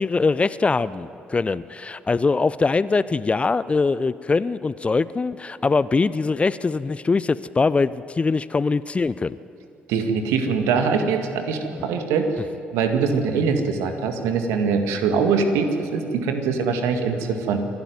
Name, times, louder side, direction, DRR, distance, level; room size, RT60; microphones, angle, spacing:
voice 1, 0.0-9.4, left 4 dB, 25° left, 17 dB, 0.5 m, -22 dB
voice 2, 9.9-12.4 12.7-17.6, right 5 dB, 65° right, 6 dB, 2.0 m, -23 dB
26.5 x 12.5 x 9.5 m, 2.6 s
figure-of-eight pair, 45°, 5 cm